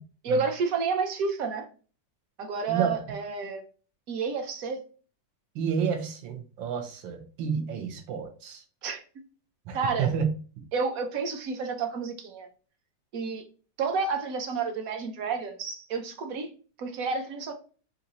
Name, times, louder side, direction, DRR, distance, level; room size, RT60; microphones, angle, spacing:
voice 1, 0.2-1.7 2.4-3.6 4.1-4.8 8.8-9.0 9.7-10.1 10.7-12.5 13.1-13.4 13.8-16.5 16.8-17.5, right 5 dB, 60° right, 1.0 m, -30 dB
voice 2, 5.5-8.6 9.7-10.3, right 7 dB, 85° right, 1.6 m, -30 dB
4.0 x 2.7 x 3.9 m
omnidirectional pair, 2.0 m